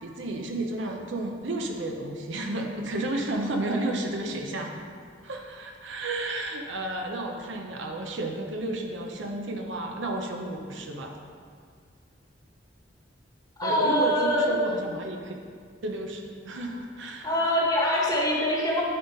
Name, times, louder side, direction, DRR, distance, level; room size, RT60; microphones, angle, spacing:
voice 1, 0.0-4.7 5.2-11.1 13.6-15.3 15.8-17.3, right 2 dB, 70° right, 2 dB, 0.7 m, -32 dB
voice 2, 13.6-14.6 17.2-18.8, equal, 20° left, -4 dB, 1.3 m, -24 dB
11.5 x 4.0 x 4.0 m, 2.1 s
head